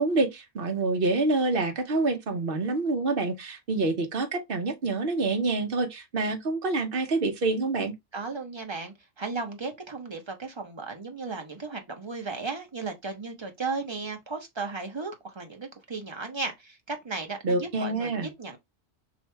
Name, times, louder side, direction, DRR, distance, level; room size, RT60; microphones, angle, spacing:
voice 1, 0.0-7.9 17.4-18.3, right 3 dB, 55° right, 1.0 m, -27 dB
voice 2, 8.1-18.6, right 4 dB, 25° right, 0.8 m, -35 dB
3.1 x 2.7 x 4.5 m
omnidirectional pair, 1.2 m